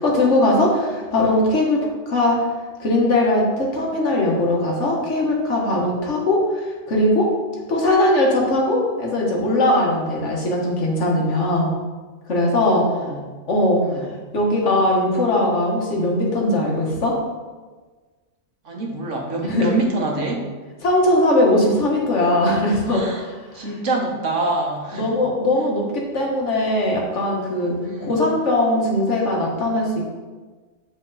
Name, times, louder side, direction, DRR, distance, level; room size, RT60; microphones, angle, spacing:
voice 1, 0.0-2.4 2.8-7.3 7.7-11.7 12.3-12.9 13.5-14.1 14.3-17.2 19.4-19.7 20.8-23.3 23.6-23.7 24.9-30.1, left 1 dB, 70° left, -2 dB, 1.7 m, -20 dB
voice 2, 12.7-13.3 13.8-14.1 18.6-20.4 22.9-23.2 23.5-25.1 27.8-28.2, right 2 dB, 75° right, 0 dB, 1.5 m, -26 dB
7.9 x 4.4 x 4.0 m, 1.3 s
omnidirectional pair, 1.3 m